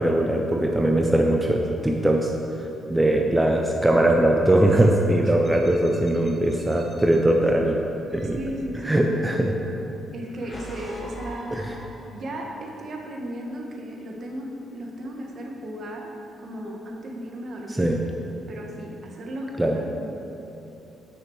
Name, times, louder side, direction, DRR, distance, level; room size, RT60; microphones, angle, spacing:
voice 1, 0.0-2.3 2.9-7.8 8.1-8.4 8.8-9.6 11.5-11.6 17.8-18.0 19.6-19.8, right 1 dB, 10° right, 1 dB, 0.6 m, -20 dB
sound 1, 5.4-7.2 8.1-9.6 10.2-12.4, equal, 30° left, 1.5 m, -42 dB
voice 2, 8.2-9.4 10.1-11.6 12.1-16.1 16.4-18.0 18.5-20.0, equal, 50° right, 0 dB, 1.4 m, -35 dB
9.2 x 6.5 x 4.7 m, 3.0 s
cardioid pair, 90°, 0 cm